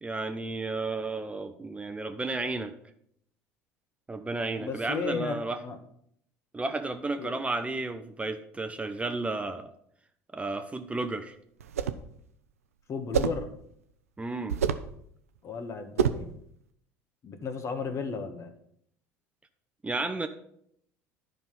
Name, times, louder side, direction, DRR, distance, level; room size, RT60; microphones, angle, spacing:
voice 1, 0.0-2.7 4.1-5.6 6.5-9.7 10.3-11.3 14.2-14.6 19.8-20.3, right 3 dB, 15° right, 7 dB, 0.8 m, -32 dB
voice 2, 4.6-5.8 7.2-7.4 12.9-13.5 15.4-16.3 17.2-18.5, left 4 dB, 40° left, 8 dB, 1.4 m, -34 dB
sound 1, 11.6-12.1 13.1-13.5 14.5-14.9 16.0-16.3, right 8 dB, 85° right, 0.5 m, -27 dB
10.5 x 5.5 x 5.9 m, 0.69 s
hypercardioid pair, 70°, 8 cm